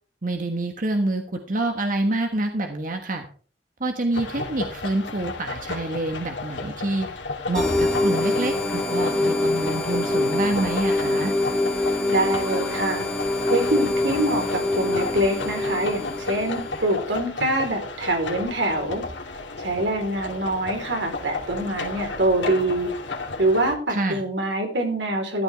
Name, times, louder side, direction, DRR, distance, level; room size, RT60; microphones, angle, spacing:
voice 1, 0.2-3.2 3.8-7.1 7.5-11.4 23.9-24.2, right 2 dB, 45° right, 4 dB, 1.4 m, -27 dB
sound 1, 4.1-23.8, left 3 dB, 85° left, 2.4 m, -34 dB
sound 2, 7.5-16.9, left 2 dB, 5° left, 3.7 m, -25 dB
voice 2, 12.1-13.1 13.5-19.0 19.6-22.9 23.4-25.4, right 1 dB, 80° right, 3 dB, 4.0 m, -25 dB
13.5 x 11.5 x 3.4 m, 0.42 s
head